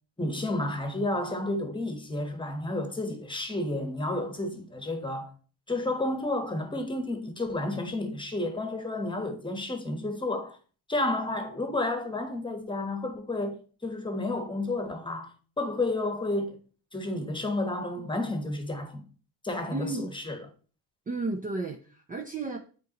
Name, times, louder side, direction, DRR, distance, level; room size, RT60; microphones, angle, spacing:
voice 1, 0.2-5.3 5.7-10.6 10.9-13.5 13.8-15.3 15.6-16.6 16.9-19.0 19.4-20.4, left 2 dB, 10° left, 1.1 m, -31 dB
voice 2, 19.7-20.1 21.1-22.6, right 3 dB, 20° right, 0.5 m, -33 dB
8.3 x 3.9 x 2.9 m
cardioid pair, 110°, 43 cm